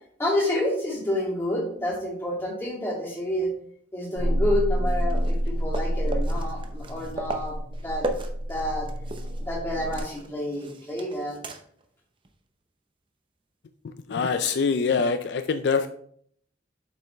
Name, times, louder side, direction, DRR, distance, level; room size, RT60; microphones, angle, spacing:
voice 1, 0.2-3.5 3.9-8.1 8.4-8.9 9.4-11.4, left 1 dB, 15° left, -4 dB, 2.2 m, -29 dB
sound 1, 4.2-10.0, equal, 60° right, 1.9 m, -28 dB
sound 2, 4.8-9.5 9.7-11.9 12.2-12.3 14.9-15.0, right 2 dB, 25° right, 0.6 m, -37 dB
voice 2, 14.1-15.9, left 5 dB, 60° left, 9 dB, 0.4 m, -24 dB
7.3 x 5.4 x 3.1 m, 0.63 s
head